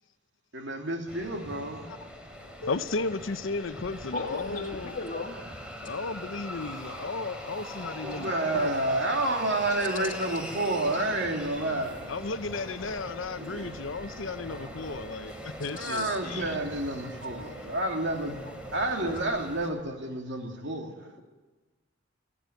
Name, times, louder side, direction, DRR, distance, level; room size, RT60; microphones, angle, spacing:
voice 1, 0.5-1.9 8.0-12.1 13.4-13.8 15.7-18.4 18.7-21.1, right 2 dB, 65° right, 2.7 m, -30 dB
sound 1, 1.1-19.7, equal, 5° right, 2.9 m, -41 dB
voice 2, 2.6-5.0 5.8-8.7 12.1-16.1, left 3 dB, 80° left, 0.8 m, -34 dB
voice 3, 4.1-5.4 15.6-16.6 18.3-18.5 19.0-19.2, left 3 dB, 45° left, 2.4 m, -37 dB
29.0 x 10.0 x 9.2 m
head